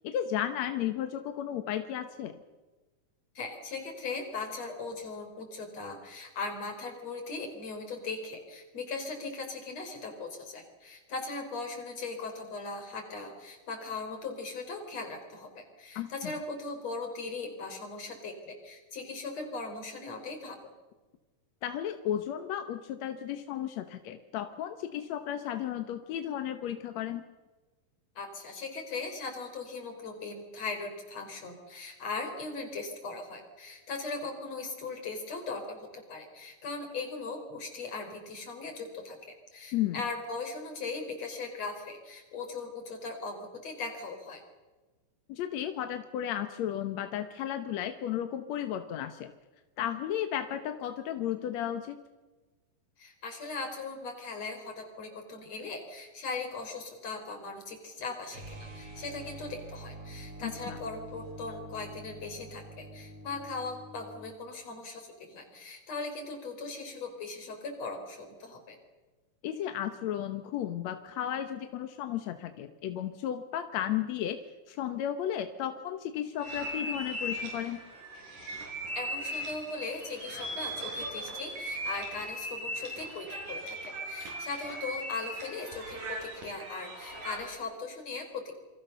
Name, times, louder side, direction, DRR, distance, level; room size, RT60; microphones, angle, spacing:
voice 1, 0.0-2.4 16.0-16.3 21.6-27.2 39.7-40.0 45.3-49.3 49.8-52.0 60.4-60.8 69.4-77.8, left 10 dB, 65° left, 8 dB, 2.0 m, -34 dB
voice 2, 3.4-20.6 28.2-44.4 53.0-68.8 78.9-88.5, left 3 dB, 50° left, 4 dB, 5.6 m, -39 dB
sound 1, 58.3-64.4, right 1 dB, 40° right, 5.8 m, -46 dB
sound 2, 76.4-87.6, equal, 65° right, 8.2 m, -38 dB
28.0 x 24.5 x 6.8 m, 1.2 s
omnidirectional pair, 4.0 m